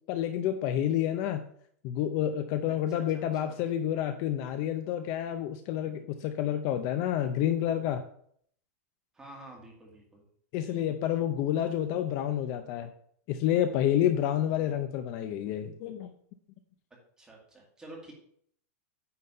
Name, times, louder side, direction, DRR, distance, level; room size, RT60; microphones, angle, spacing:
voice 1, 0.1-1.4 1.8-8.0 10.5-12.9 13.3-16.1, left 11 dB, 35° left, 8 dB, 0.5 m, -29 dB
voice 2, 2.7-3.6 9.1-10.2 14.5-14.8 17.2-18.1, right 2 dB, 10° right, -2 dB, 2.1 m, -49 dB
9.4 x 4.0 x 5.5 m, 0.63 s
supercardioid pair, 165°, 8 cm